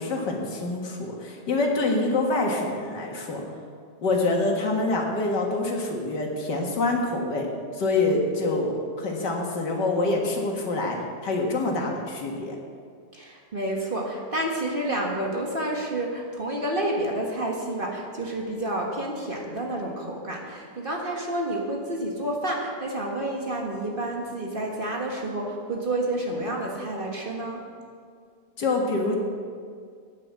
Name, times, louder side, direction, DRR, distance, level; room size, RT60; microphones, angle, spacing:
voice 1, 0.0-3.4 4.0-7.5 7.7-11.0 11.2-12.5 28.6-29.2, left 2 dB, 80° left, 0 dB, 2.2 m, -26 dB
voice 2, 13.1-27.6, right 1 dB, 35° right, -1 dB, 1.6 m, -29 dB
9.1 x 9.0 x 7.1 m, 2.1 s
omnidirectional pair, 1.8 m